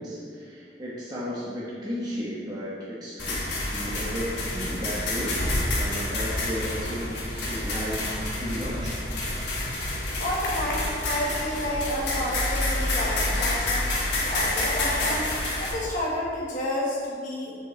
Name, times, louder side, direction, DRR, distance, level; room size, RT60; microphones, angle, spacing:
voice 1, 0.0-5.4 5.7-8.1 8.4-9.0, equal, 20° right, -8 dB, 1.0 m, -34 dB
sound 1, 3.2-15.7, left 2 dB, 65° left, 1.6 m, -28 dB
voice 2, 10.2-13.9 14.3-15.2 15.6-17.5, left 1 dB, 45° left, -5 dB, 1.2 m, -30 dB
7.2 x 7.2 x 3.2 m, 2.2 s
head